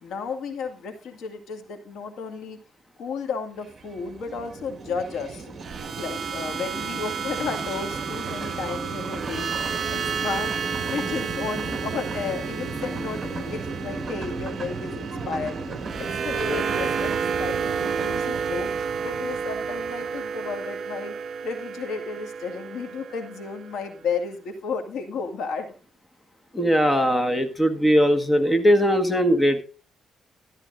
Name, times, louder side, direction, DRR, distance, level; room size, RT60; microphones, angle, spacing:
voice 1, 0.0-2.6 3.0-5.5 6.0-9.5 9.9-10.5 10.8-15.6 16.0-18.7 19.0-21.1 21.4-25.7, left 5 dB, 80° left, 5 dB, 2.1 m, -33 dB
sound 1, 3.6-20.3, right 3 dB, 35° right, 1.8 m, -35 dB
sound 2, 5.6-23.8, right 6 dB, 50° right, 2.2 m, -31 dB
voice 2, 26.5-29.6, equal, 15° left, 7 dB, 1.6 m, -20 dB
13.5 x 11.5 x 2.6 m, 0.36 s
cardioid pair, 90°, 0 cm